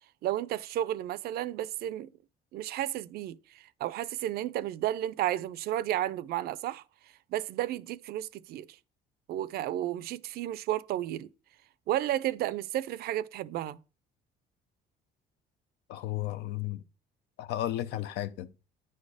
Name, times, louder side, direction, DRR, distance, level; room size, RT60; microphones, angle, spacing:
voice 1, 0.2-2.1 2.5-6.8 7.3-8.8 9.3-11.3 11.9-13.8, right 13 dB, 65° right, 0.4 m, -32 dB
voice 2, 15.9-16.8 17.4-18.5, left 13 dB, 85° left, 0.6 m, -33 dB
9.4 x 4.3 x 4.8 m
cardioid pair, 110°, 17 cm